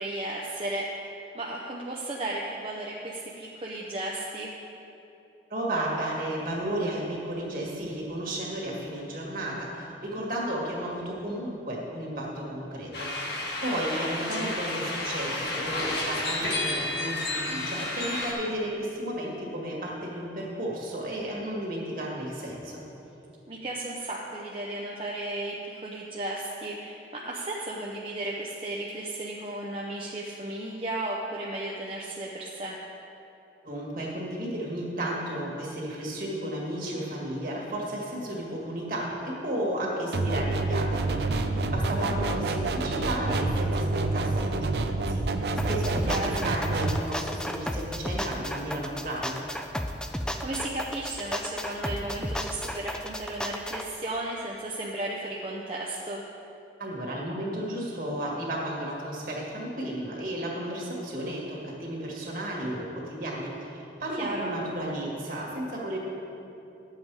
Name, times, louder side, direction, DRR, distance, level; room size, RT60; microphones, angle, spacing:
voice 1, 0.0-4.5 23.5-32.8 42.0-42.2 46.1-46.4 50.4-56.2 64.2-64.5, right 1 dB, 30° right, -3 dB, 0.7 m, -34 dB
voice 2, 5.5-22.8 33.6-46.1 46.4-49.4 56.8-66.0, right 1 dB, 50° right, -3 dB, 1.9 m, -33 dB
sound 1, 12.9-18.3, left 2 dB, 65° left, 1.8 m, -31 dB
sound 2, 40.1-47.0, right 2 dB, 65° right, 0.5 m, -28 dB
sound 3, 45.6-53.9, equal, 5° left, 0.4 m, -33 dB
11.0 x 7.6 x 4.7 m, 2.9 s
head